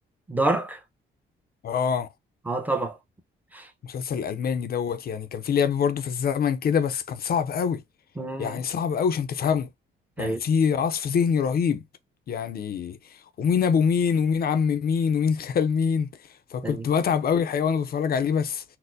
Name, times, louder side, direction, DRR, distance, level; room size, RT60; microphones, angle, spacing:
voice 1, 0.3-0.8 2.5-3.0 3.5-3.7 8.2-8.6 10.2-10.4 16.6-16.9, right 2 dB, 10° right, 0.7 m, -27 dB
voice 2, 1.6-2.1 3.8-7.8 8.4-9.7 10.2-11.8 12.3-13.0 13.4-16.1 16.5-18.6, left 7 dB, 50° left, 0.5 m, -24 dB
4.2 x 2.0 x 2.6 m
cardioid pair, 90°, 20 cm